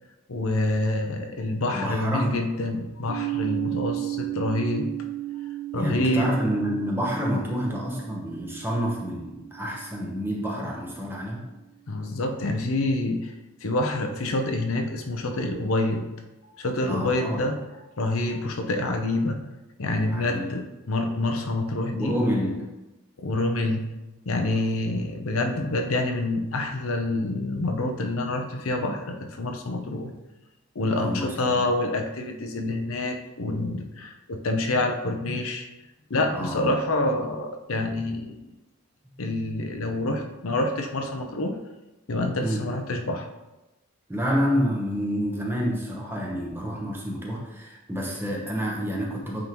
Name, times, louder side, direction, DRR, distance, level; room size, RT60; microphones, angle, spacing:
voice 1, 0.3-4.9 5.7-6.3 11.9-13.4 13.6-16.0 16.4-17.6 18.0-19.4 19.8-22.2 23.2-23.9 24.3-30.1 30.7-35.7 36.1-38.5 39.2-41.6 42.1-43.3, left 2 dB, 75° left, 4 dB, 0.7 m, -27 dB
voice 2, 1.7-2.4 5.8-11.4 16.8-17.4 20.0-20.6 21.9-22.7 30.9-31.6 36.3-36.7 42.4-42.7 44.1-49.4, equal, 10° right, -3 dB, 1.0 m, -28 dB
sound 1, 3.1-10.9, right 15 dB, 75° right, 0.5 m, -34 dB
8.8 x 3.7 x 3.0 m, 1.0 s
head